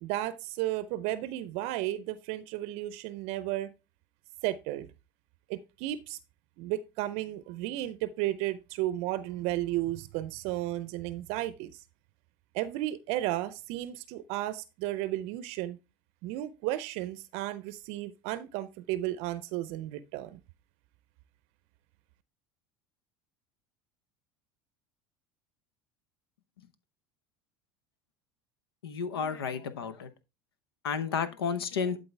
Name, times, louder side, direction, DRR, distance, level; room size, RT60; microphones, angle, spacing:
voice 1, 0.0-3.7 4.4-4.9 5.5-6.2 6.6-11.7 12.5-15.8 16.2-20.4, right 15 dB, 60° right, 0.6 m, -33 dB
voice 2, 28.8-30.1 30.8-32.0, left 6 dB, 90° left, 0.9 m, -32 dB
11.5 x 3.9 x 3.3 m
hypercardioid pair, 85°, 12 cm